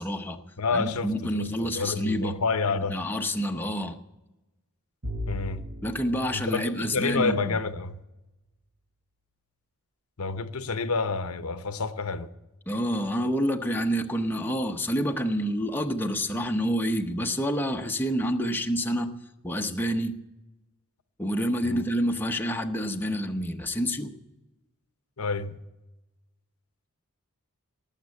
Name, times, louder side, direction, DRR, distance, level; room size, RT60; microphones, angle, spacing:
voice 1, 0.0-0.4 0.7-2.3 2.8-4.0 5.8-7.6 12.7-19.1 19.4-20.1 21.2-24.1, equal, 10° left, 0.8 m, -28 dB
voice 2, 0.6-3.0 5.3-5.6 6.3-8.0 10.2-12.3 21.6-21.8 25.2-25.6, left 4 dB, 70° left, 0.8 m, -29 dB
Bowed string instrument, 5.0-8.1, left 1 dB, 60° right, 4.9 m, -38 dB
18.5 x 7.4 x 8.3 m
head